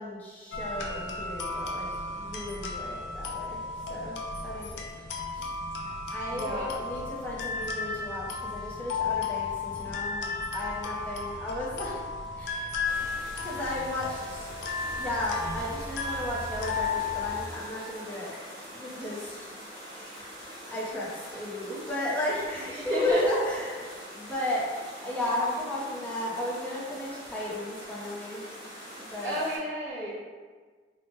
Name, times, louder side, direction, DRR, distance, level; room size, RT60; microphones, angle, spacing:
voice 1, 0.0-3.6 3.9-4.9 5.3-5.5 6.1-12.0 12.4-12.7 13.4-14.5 15.0-18.3 18.7-19.5 20.1-20.3 20.7-24.7 25.0-28.4 29.0-29.4, left 1 dB, 10° left, -6 dB, 0.4 m, -34 dB
sound 1, 0.5-17.4, left 4 dB, 70° left, 0.4 m, -34 dB
voice 2, 6.3-6.7 19.9-20.2 22.7-23.2 29.2-30.1, equal, 90° right, -11 dB, 1.0 m, -32 dB
sound 2, 12.8-29.6, equal, 60° right, 1.3 m, -44 dB
2.9 x 2.0 x 2.9 m, 1.5 s
head